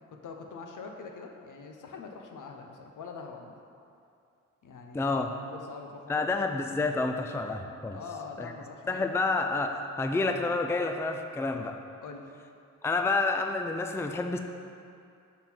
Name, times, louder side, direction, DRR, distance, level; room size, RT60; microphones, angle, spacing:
voice 1, 0.1-3.5 4.6-6.4 7.9-9.2 12.0-12.3, left 4 dB, 70° left, 3 dB, 0.8 m, -44 dB
voice 2, 4.9-5.3 6.1-8.0 8.4-8.5 8.9-11.8 12.8-14.4, left 3 dB, 10° left, 5 dB, 0.4 m, -29 dB
6.1 x 5.3 x 4.5 m, 2.5 s
cardioid pair, 65°, 32 cm